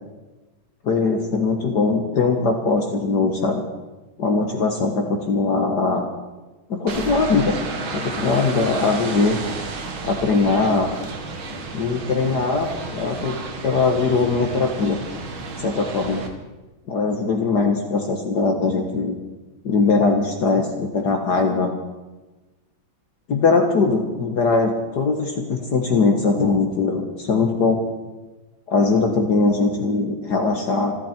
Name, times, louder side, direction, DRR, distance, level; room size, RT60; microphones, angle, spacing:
voice 1, 0.8-3.6 4.2-6.1 6.7-7.6 7.9-9.4 10.0-10.9 11.7-15.0 15.6-16.2 16.9-19.2 19.6-21.7 23.3-27.8 28.7-31.0, left 4 dB, 55° left, 3 dB, 1.9 m, -21 dB
sound 1, 6.9-16.3, right 3 dB, 75° right, 2.5 m, -32 dB
27.0 x 12.0 x 4.4 m, 1.2 s
omnidirectional pair, 2.2 m